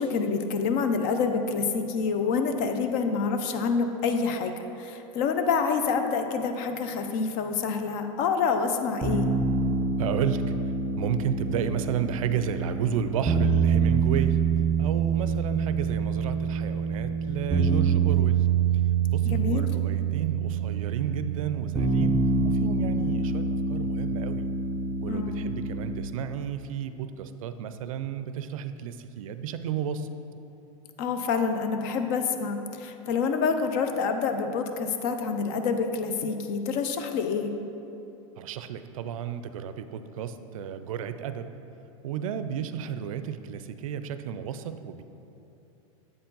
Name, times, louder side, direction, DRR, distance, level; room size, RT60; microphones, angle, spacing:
voice 1, 0.0-9.3 19.2-19.7 25.1-25.5 31.0-37.5, left 5 dB, 45° left, 7 dB, 0.5 m, -27 dB
sound 1, 9.0-26.0, right 5 dB, 10° right, 0.5 m, -26 dB
voice 2, 10.0-10.5 11.0-14.4 14.8-18.5 19.1-24.5 25.0-30.1 38.4-41.5 42.0-45.0, right 8 dB, 80° right, 10 dB, 0.4 m, -32 dB
7.7 x 4.5 x 3.9 m, 2.9 s
supercardioid pair, 140°, 17 cm